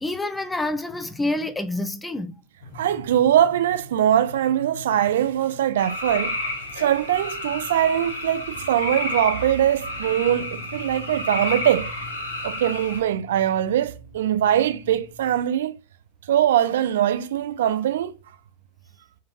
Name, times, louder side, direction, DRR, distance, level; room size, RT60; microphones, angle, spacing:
voice 1, 0.0-2.4, left 2 dB, 10° left, 0.4 m, -27 dB
sound 1, 2.6-15.4, left 1 dB, 40° left, 1.1 m, -45 dB
voice 2, 2.7-6.4 6.8-11.9 12.4-15.7 16.3-18.2, right 11 dB, 60° right, 0.4 m, -22 dB
sound 2, 5.8-13.0, left 2 dB, 70° left, 0.8 m, -31 dB
3.9 x 2.4 x 2.5 m
figure-of-eight pair, 90°, 0 cm